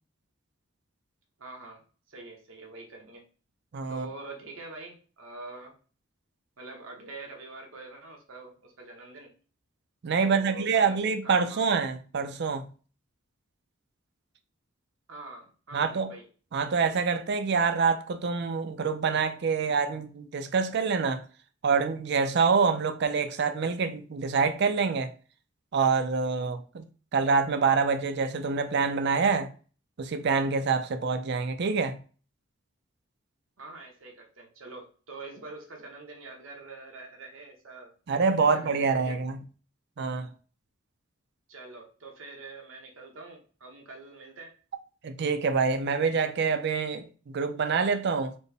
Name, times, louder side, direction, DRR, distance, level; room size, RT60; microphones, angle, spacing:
voice 1, 1.4-1.8 2.1-3.2 3.9-5.7 6.6-9.3 10.2-11.0 11.2-11.8 15.1-16.3 33.6-37.9 38.5-39.2 41.5-44.5, right 3 dB, 85° right, 1.1 m, -45 dB
voice 2, 3.7-4.1 10.0-12.7 15.7-16.1 16.5-21.2 21.6-25.1 25.7-29.5 30.0-32.0 38.1-39.4 40.0-40.3 45.0-48.3, right 5 dB, 55° right, 0.4 m, -26 dB
4.2 x 2.1 x 3.3 m
head